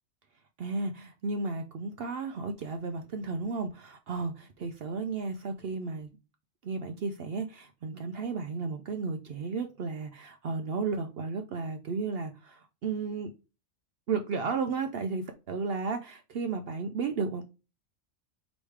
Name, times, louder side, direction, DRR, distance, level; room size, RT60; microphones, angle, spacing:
voice 1, 0.6-6.1 6.6-13.3 14.1-17.4, right 4 dB, 60° right, 0.7 m, -33 dB
4.9 x 3.1 x 3.2 m
omnidirectional pair, 1.3 m